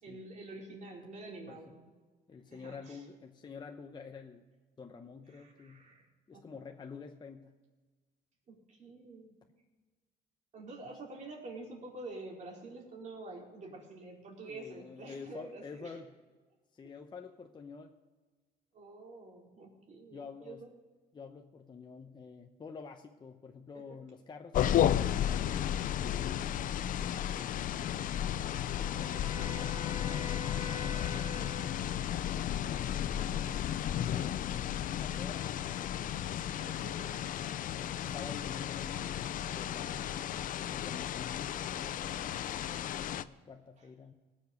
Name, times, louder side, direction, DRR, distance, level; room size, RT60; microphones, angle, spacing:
voice 1, 0.0-1.8 2.5-3.1 5.3-6.5 8.5-9.4 10.5-16.0 18.7-20.7 28.4-29.1 30.9-31.7 36.6-37.6 43.8-43.9, right 2 dB, 45° right, -2 dB, 4.3 m, -48 dB
voice 2, 2.3-4.4 4.8-5.8 6.3-7.6 14.4-16.1 16.7-17.9 20.1-20.6 21.1-26.0 27.0-27.5 29.0-31.4 32.1-33.8 34.0-36.1 37.7-40.4 40.7-44.1, left 5 dB, 25° left, 4 dB, 0.8 m, -49 dB
sound 1, 24.5-43.2, left 10 dB, 55° left, 0.5 m, -33 dB
Wind instrument woodwind instrument, 28.6-32.7, left 2 dB, 20° right, 2.9 m, -46 dB
19.0 x 7.3 x 5.3 m, 1.3 s
cardioid pair, 110°, 17 cm